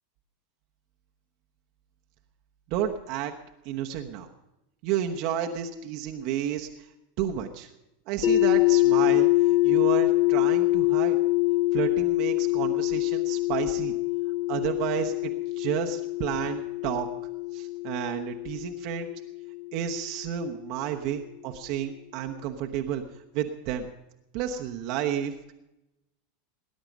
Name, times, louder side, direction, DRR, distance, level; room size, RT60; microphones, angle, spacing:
voice 1, 2.7-3.3 3.6-4.3 4.8-6.7 7.2-7.7 8.1-11.2 11.7-13.9 14.5-17.1 17.5-19.1 19.7-23.0 23.3-23.9 24.3-25.3, right 10 dB, 45° right, 3 dB, 1.0 m, -31 dB
sound 1, 8.2-20.1, left 19 dB, 60° left, 2.1 m, -25 dB
19.0 x 10.0 x 5.2 m, 0.92 s
figure-of-eight pair, 85°, 0 cm